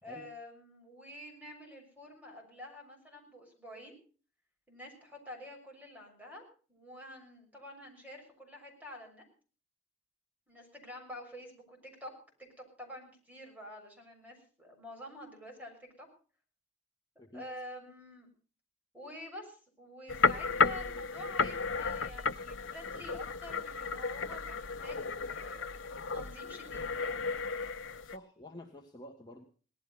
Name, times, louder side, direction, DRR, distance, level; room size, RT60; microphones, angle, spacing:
voice 1, 0.0-4.0 4.7-6.4 6.7-9.2 10.5-12.1 12.4-12.5 12.8-16.1 17.3-18.3 18.9-27.1, left 1 dB, 10° right, 3 dB, 6.3 m, -48 dB
Bob Ulrich trees creaking, 20.1-28.2, left 4 dB, 70° left, 0.7 m, -33 dB
voice 2, 28.0-29.5, equal, 20° left, 1 dB, 1.6 m, -49 dB
18.5 x 12.5 x 5.5 m, 0.41 s
head